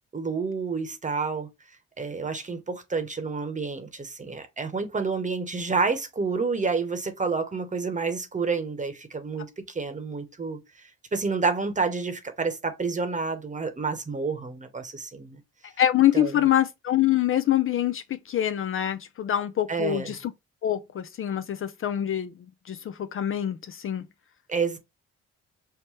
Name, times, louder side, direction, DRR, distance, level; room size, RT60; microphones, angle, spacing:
voice 1, 0.1-1.5 2.0-15.4 16.1-16.5 19.7-20.2 24.5-24.8, right 4 dB, 25° right, 1.0 m, -29 dB
voice 2, 15.8-20.3 20.6-22.3 22.7-24.1, left 11 dB, 45° left, 0.4 m, -25 dB
5.6 x 2.1 x 3.1 m
cardioid pair, 90°, 30 cm